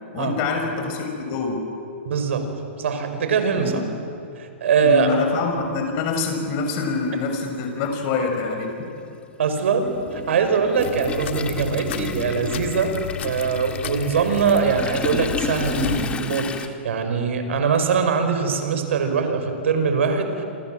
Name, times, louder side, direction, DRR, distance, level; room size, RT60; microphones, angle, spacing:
voice 1, 0.1-1.7 3.6-3.9 4.8-8.9, left 4 dB, 40° left, 4 dB, 6.5 m, -26 dB
voice 2, 2.1-2.5 2.8-3.8 4.4-5.1 9.4-12.9 13.2-20.4, right 5 dB, 75° right, 6 dB, 5.3 m, -22 dB
Toilet flush, 6.2-6.3 7.6-7.7 8.0-16.7, left 6 dB, 15° left, 2.0 m, -32 dB
sound 1, 10.8-16.1, left 9 dB, 65° left, 1.7 m, -33 dB
28.0 x 27.5 x 7.7 m, 2.6 s
hypercardioid pair, 135°, 7 cm